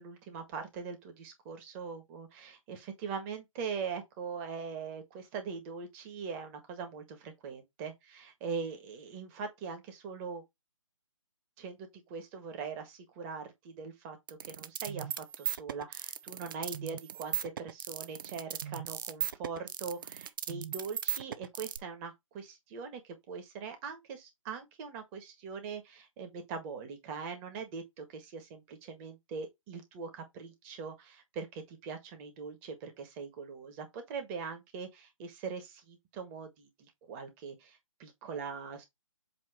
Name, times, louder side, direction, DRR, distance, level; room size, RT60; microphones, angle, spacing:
voice 1, 0.0-10.4 11.6-38.8, right 5 dB, 20° right, 1.7 m, -42 dB
sound 1, 14.3-21.8, right 9 dB, 40° right, 0.6 m, -37 dB
7.6 x 3.0 x 4.3 m
figure-of-eight pair, 140°, 17 cm